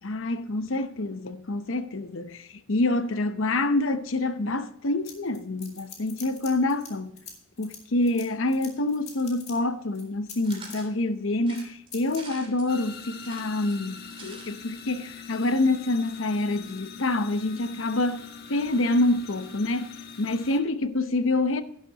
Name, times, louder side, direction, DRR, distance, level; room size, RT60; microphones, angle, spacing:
voice 1, 0.0-7.2 7.6-18.2 18.5-19.9 20.2-21.6, left 2 dB, 70° left, 0.8 m, -27 dB
sound 1, 5.0-6.9 7.2-9.5 9.9-10.8 11.5-11.6 11.9-12.2, left 5 dB, 35° left, 2.5 m, -44 dB
sound 2, 10.4-10.9 11.4-12.7 13.1-14.5 14.8-14.9 15.1-15.2, right 4 dB, 25° right, 3.1 m, -46 dB
sound 3, 12.7-20.6, left 5 dB, 50° left, 1.2 m, -43 dB
11.5 x 11.0 x 2.9 m
head